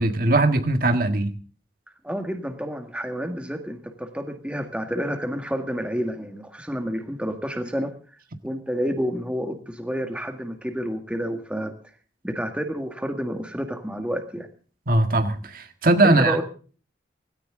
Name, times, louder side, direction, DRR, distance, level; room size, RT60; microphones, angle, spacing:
voice 1, 0.0-1.3 14.9-16.4, right 2 dB, 50° right, 1.6 m, -20 dB
voice 2, 2.0-7.9 8.4-11.7 12.2-14.5 16.0-16.4, equal, 5° right, 1.8 m, -29 dB
18.0 x 16.5 x 3.7 m
head